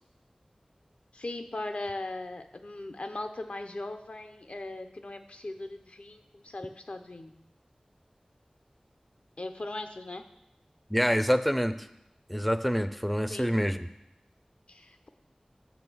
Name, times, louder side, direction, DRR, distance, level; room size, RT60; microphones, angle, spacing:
voice 1, 1.1-7.3 9.4-10.2 13.3-13.5 14.7-15.1, left 2 dB, 65° left, 7 dB, 0.6 m, -39 dB
voice 2, 10.9-11.8 12.3-13.9, equal, ahead, 11 dB, 0.5 m, -26 dB
7.0 x 6.0 x 6.2 m, 0.85 s
wide cardioid pair, 55°, 2 cm